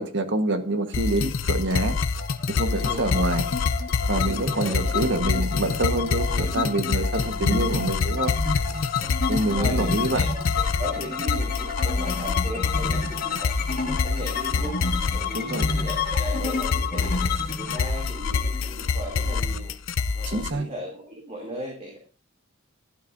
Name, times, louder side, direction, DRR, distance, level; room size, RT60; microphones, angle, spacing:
voice 1, 0.0-2.0 2.5-3.4 4.1-8.3 9.3-10.2 15.3-15.7 20.3-20.7, right 2 dB, 65° right, 7 dB, 1.4 m, -26 dB
sound 1, 0.9-20.5, left 4 dB, 70° left, 0.5 m, -27 dB
sound 2, 2.0-19.7, left 5 dB, 45° left, 1.6 m, -31 dB
voice 2, 2.7-3.3 4.2-5.0 6.3-6.6 7.6-7.8 9.0-9.2 9.5-14.8 15.1-17.2 17.6-19.7 20.1-22.0, equal, 35° right, -2 dB, 3.0 m, -37 dB
12.5 x 12.0 x 2.7 m, 0.36 s
head